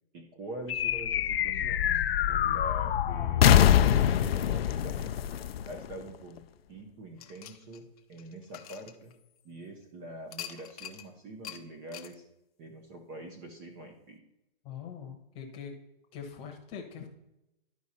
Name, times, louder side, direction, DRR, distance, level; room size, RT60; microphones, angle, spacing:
voice 1, 0.1-2.0 2.3-5.3 5.7-6.4 6.7-9.1 9.4-12.2 12.6-14.2, right 1 dB, 15° right, 3 dB, 0.5 m, -44 dB
sound 1, 0.7-6.4, left 11 dB, 80° left, 0.5 m, -25 dB
sound 2, 7.2-9.6 10.3-11.1 11.4-11.6 11.9-12.1, left 10 dB, 40° left, 0.6 m, -45 dB
voice 2, 14.6-15.7 16.1-17.1, left 7 dB, 20° left, 3 dB, 1.0 m, -42 dB
11.0 x 4.8 x 4.2 m, 0.89 s
hypercardioid pair, 155°, 30 cm